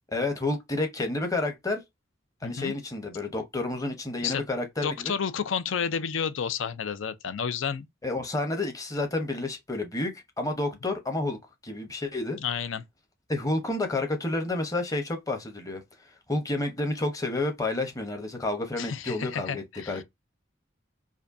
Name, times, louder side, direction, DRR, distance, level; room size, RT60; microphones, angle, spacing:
voice 1, 0.1-1.8 2.4-5.1 8.0-12.4 13.3-15.8 16.3-20.0, left 2 dB, 20° left, 0.9 m, -30 dB
voice 2, 2.4-2.7 4.2-4.4 4.8-7.9 12.4-12.8 18.8-20.0, left 7 dB, 80° left, 0.5 m, -31 dB
5.0 x 2.2 x 2.6 m
head